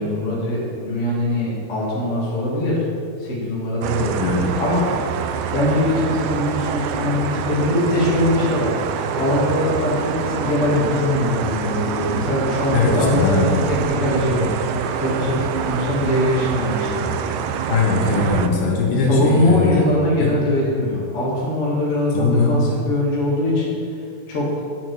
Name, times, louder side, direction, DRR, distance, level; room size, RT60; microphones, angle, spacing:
voice 1, 0.0-2.8 3.2-4.9 5.5-8.7 9.1-14.5 15.0-17.1 18.2-18.3 19.1-23.8 24.3-24.6, left 1 dB, 30° left, -5 dB, 1.4 m, -21 dB
sound 1, 3.8-18.5, right 7 dB, 85° right, 2.5 m, -26 dB
voice 2, 12.7-13.5 17.7-19.9 20.2-20.3 22.1-22.6, left 3 dB, 75° left, -1 dB, 3.0 m, -19 dB
8.2 x 7.7 x 4.7 m, 2.5 s
omnidirectional pair, 4.3 m